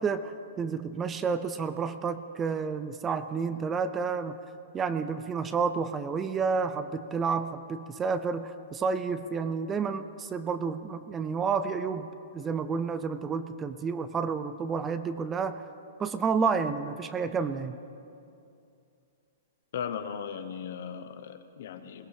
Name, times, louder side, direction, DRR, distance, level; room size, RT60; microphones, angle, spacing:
voice 1, 0.0-4.4 4.7-12.1 12.3-15.6 16.0-17.8, right 5 dB, 15° right, 11 dB, 0.4 m, -30 dB
voice 2, 19.7-22.1, left 7 dB, 60° left, 9 dB, 1.0 m, -37 dB
21.0 x 17.5 x 3.4 m, 2.6 s
hypercardioid pair, 165°, 0 cm